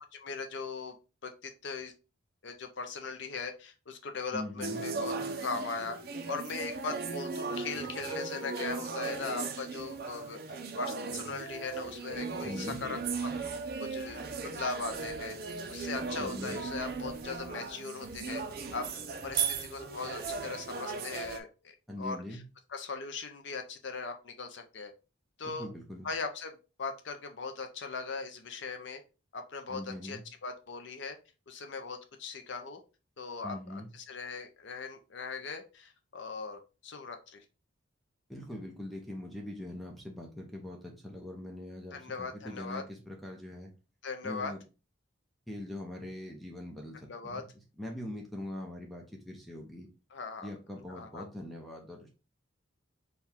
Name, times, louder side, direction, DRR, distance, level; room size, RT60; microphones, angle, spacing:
voice 1, 0.2-0.9 1.2-1.9 2.4-5.1 5.4-6.0 6.3-10.4 10.8-13.3 13.8-14.3 14.5-15.4 15.7-18.4 18.7-18.9 19.2-21.7 22.0-22.4 22.7-24.9 25.4-25.7 26.0-29.0 29.3-31.2 31.5-32.8 33.2-37.4 41.9-42.8 44.0-44.5 47.1-47.4 50.1-50.5 50.9-51.3, left 4 dB, 60° left, 6 dB, 0.5 m, -39 dB
voice 2, 4.3-4.8 12.4-12.8 16.2-16.6 21.9-22.4 25.4-26.1 29.7-30.2 33.4-33.9 38.3-43.7 44.2-44.6 45.5-47.4 47.8-49.9 50.4-52.1, left 1 dB, ahead, 0 dB, 0.7 m, -42 dB
sound 1, 4.6-21.4, right 4 dB, 45° right, 0.5 m, -37 dB
4.6 x 2.3 x 3.5 m, 0.32 s
head